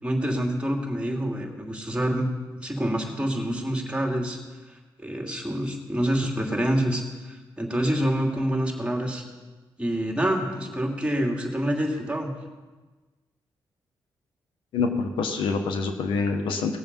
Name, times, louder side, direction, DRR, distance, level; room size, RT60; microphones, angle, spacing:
voice 1, 0.0-2.3 2.6-4.4 5.0-9.2 9.8-12.3, equal, 15° right, 1 dB, 2.8 m, -27 dB
voice 2, 14.7-16.8, left 4 dB, 85° left, 5 dB, 1.2 m, -26 dB
19.0 x 7.1 x 5.4 m, 1.3 s
cardioid pair, 65°, 8 cm